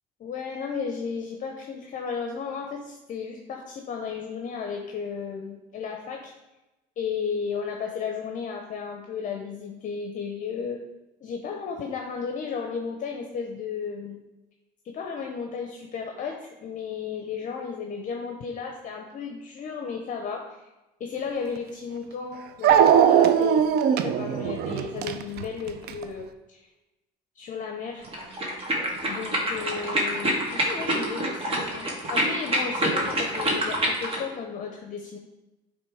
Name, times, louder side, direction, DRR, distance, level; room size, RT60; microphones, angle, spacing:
voice 1, 0.2-6.3 7.0-10.8 11.2-14.2 14.8-20.6 21.0-23.7 23.9-26.7 27.3-28.1 29.1-35.2, left 6 dB, 50° left, 2 dB, 0.7 m, -34 dB
Dog, 21.6-21.7 22.6-26.0, right 9 dB, 70° right, 0.5 m, -20 dB
sound 1, 28.0-34.2, right 1 dB, 35° right, 1.4 m, -27 dB
7.4 x 3.1 x 4.8 m, 1.0 s
cardioid pair, 110°, 17 cm